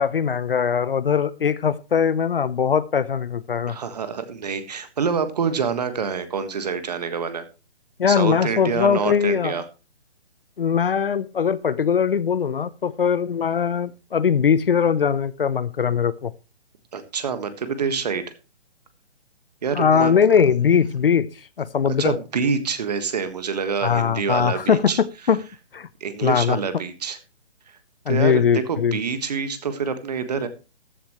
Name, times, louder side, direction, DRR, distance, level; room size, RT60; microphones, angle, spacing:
voice 1, 0.0-3.8 8.0-9.6 10.6-16.3 19.7-21.3 21.6-22.1 23.8-25.5 25.7-25.9 26.2-26.6 28.1-29.0, left 7 dB, 55° left, 0.8 m, -21 dB
voice 2, 3.7-7.5 8.1-9.6 16.9-18.2 19.6-20.1 22.0-25.0 26.0-27.2 28.1-30.5, right 6 dB, 35° right, 1.5 m, -26 dB
14.0 x 11.0 x 3.1 m
hypercardioid pair, 170°, 34 cm